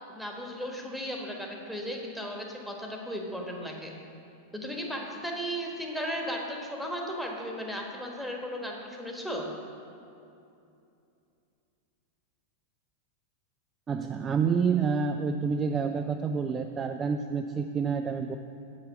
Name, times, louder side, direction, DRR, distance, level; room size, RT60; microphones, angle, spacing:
voice 1, 0.0-3.9 4.5-9.5, equal, ahead, 0 dB, 1.4 m, -35 dB
voice 2, 13.9-18.4, right 5 dB, 20° right, 6 dB, 0.4 m, -28 dB
8.0 x 7.1 x 6.3 m, 2.6 s
figure-of-eight pair, 90°, 0 cm